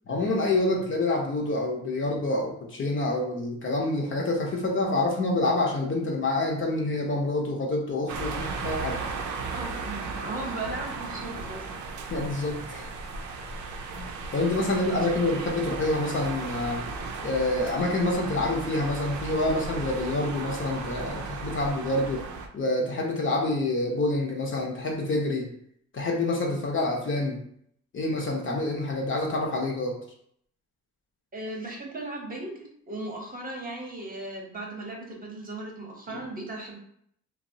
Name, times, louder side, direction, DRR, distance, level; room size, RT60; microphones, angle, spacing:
voice 1, 0.1-9.0 12.1-12.9 14.0-16.8 17.2-22.2 22.5-25.5 25.9-27.4 27.9-30.0 36.1-36.2, left 2 dB, 40° left, 0 dB, 0.7 m, -27 dB
sound 1, 8.1-22.5, right 4 dB, 75° right, 0.5 m, -35 dB
voice 2, 9.4-11.6 14.6-14.9 31.3-36.8, right 2 dB, 30° right, 0 dB, 0.9 m, -37 dB
2.8 x 2.0 x 2.7 m, 0.68 s
cardioid pair, 90°, 30 cm